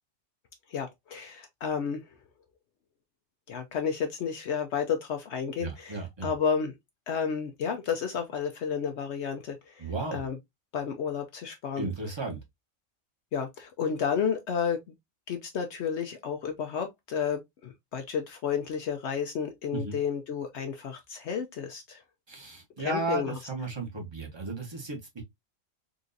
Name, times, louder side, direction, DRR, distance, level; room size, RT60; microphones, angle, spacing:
voice 1, 0.7-2.0 3.5-6.7 7.1-10.4 10.7-11.9 13.3-14.8 15.3-22.0 22.8-23.3, left 7 dB, 65° left, 0.8 m, -31 dB
voice 2, 5.6-6.3 9.8-10.3 11.8-12.4 19.7-20.0 22.3-25.2, right 3 dB, 20° right, 1.0 m, -34 dB
3.9 x 2.6 x 2.5 m
omnidirectional pair, 1.3 m